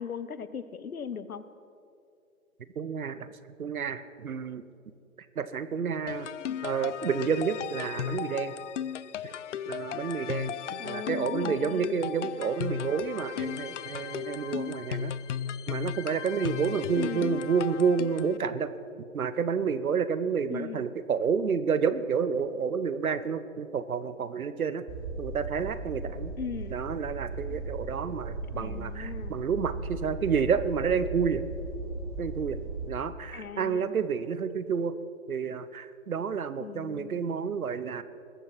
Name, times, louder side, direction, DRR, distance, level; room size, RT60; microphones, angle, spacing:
voice 1, 0.0-1.4 6.3-6.6 10.8-12.0 16.9-17.3 20.5-20.8 26.4-26.7 28.6-29.3 33.3-34.0 36.6-37.2, left 7 dB, 80° left, 14 dB, 1.0 m, -38 dB
voice 2, 2.8-3.3 3.6-4.6 5.4-6.3 6.6-8.5 9.2-9.3 9.7-10.6 10.8-15.1 15.7-18.7 19.1-24.8 25.2-26.3 26.7-31.4 32.2-32.6 32.9-34.9 35.3-38.0, right 6 dB, 80° right, 13 dB, 1.0 m, -29 dB
sound 1, 6.1-18.4, left 9 dB, 60° left, 0.5 m, -36 dB
sound 2, 24.9-32.9, right 3 dB, 25° right, 1.7 m, -37 dB
21.0 x 7.2 x 5.8 m, 2.5 s
hypercardioid pair, 140°, 43 cm